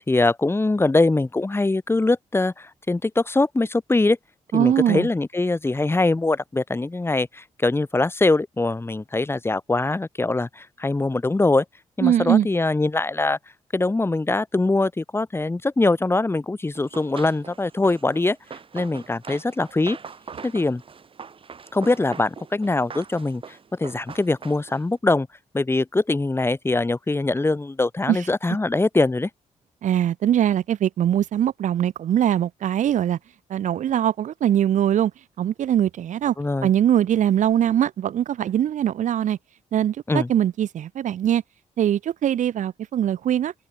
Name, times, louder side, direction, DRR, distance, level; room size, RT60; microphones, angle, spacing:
voice 1, 0.1-4.2 4.5-11.6 12.0-13.4 13.7-18.4 18.7-20.0 20.4-20.8 21.7-25.3 25.5-29.3 36.4-36.7 40.1-40.3, left 2 dB, 20° left, 4.4 m, -22 dB
voice 2, 4.5-5.1 12.0-12.5 28.1-28.2 29.8-33.2 33.5-35.1 35.4-36.3 36.6-39.4 39.7-41.4 41.8-43.5, right 10 dB, 75° right, 1.6 m, -21 dB
Run, 16.7-24.9, right 6 dB, 45° right, 7.2 m, -42 dB
cardioid pair, 110°, 13 cm